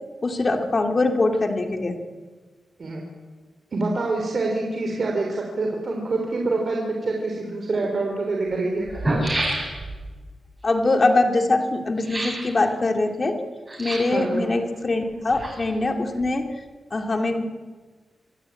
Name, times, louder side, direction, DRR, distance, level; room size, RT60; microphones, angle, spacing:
voice 1, 0.2-2.0 10.6-13.3 13.8-16.5 16.9-17.4, left 2 dB, 30° left, 4 dB, 2.5 m, -22 dB
voice 2, 3.7-8.9 14.1-14.4, right 3 dB, 45° right, 1 dB, 3.6 m, -26 dB
sound 1, 7.5-7.6 8.5-8.6 8.8-10.0 12.0-12.5 13.7-14.2 15.1-15.9 16.1-16.2, right 1 dB, 20° right, 8.0 m, -27 dB
25.5 x 18.0 x 9.0 m, 1.4 s
wide cardioid pair, 160°, 0 cm